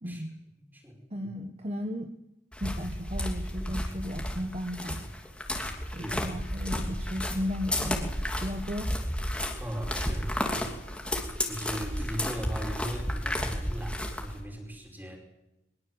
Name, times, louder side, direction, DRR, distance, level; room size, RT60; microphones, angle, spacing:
voice 1, 0.0-0.4 1.1-2.1 2.6-5.0 5.9-8.9, left 1 dB, 35° right, 6 dB, 1.3 m, -35 dB
voice 2, 0.6-1.0 6.0-6.1 9.6-10.8 11.2-15.2, equal, 10° right, 3 dB, 5.1 m, -38 dB
sound 1, 2.5-14.4, left 1 dB, 5° left, 3.0 m, -32 dB
23.0 x 21.5 x 8.0 m, 0.90 s
head